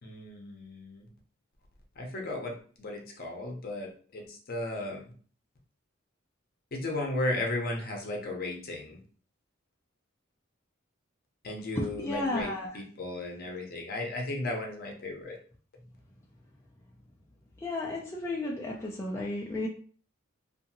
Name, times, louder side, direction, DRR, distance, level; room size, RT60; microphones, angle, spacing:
voice 1, 0.0-1.1 2.0-5.1 6.7-9.0 11.4-15.4, left 2 dB, 50° left, 1 dB, 0.7 m, -35 dB
voice 2, 11.8-12.7 17.6-19.7, left 2 dB, 15° left, -3 dB, 0.4 m, -33 dB
2.7 x 2.5 x 2.6 m, 0.43 s
head